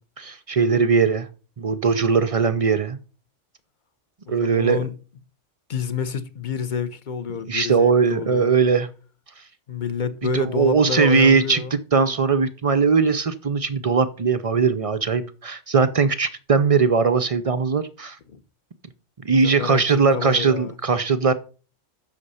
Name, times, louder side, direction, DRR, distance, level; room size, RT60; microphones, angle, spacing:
voice 1, 0.2-1.3 1.6-3.0 4.3-4.8 7.5-8.9 10.3-18.2 19.2-21.3, right 5 dB, 50° right, 0.4 m, -20 dB
voice 2, 4.3-4.9 5.7-8.5 9.7-11.7 18.3-18.4 19.4-20.8, left 6 dB, 45° left, 0.9 m, -29 dB
8.5 x 6.6 x 5.5 m
omnidirectional pair, 1.3 m